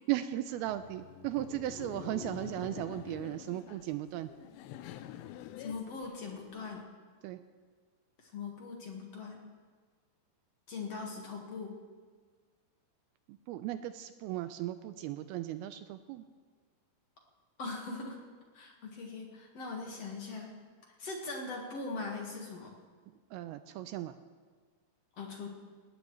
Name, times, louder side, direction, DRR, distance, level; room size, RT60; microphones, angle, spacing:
voice 1, 0.1-4.3 7.2-7.4 13.5-16.2 23.3-24.1, right 14 dB, 85° right, 10 dB, 2.2 m, -36 dB
Laughter, 0.6-6.8, left 11 dB, 85° left, 2.9 m, -47 dB
voice 2, 5.6-6.8 8.2-9.4 10.7-11.7 17.6-18.2 18.5-20.6 20.9-22.7 25.2-25.5, left 3 dB, 50° left, 0 dB, 2.0 m, -41 dB
19.5 x 17.5 x 3.2 m, 1.5 s
omnidirectional pair, 4.9 m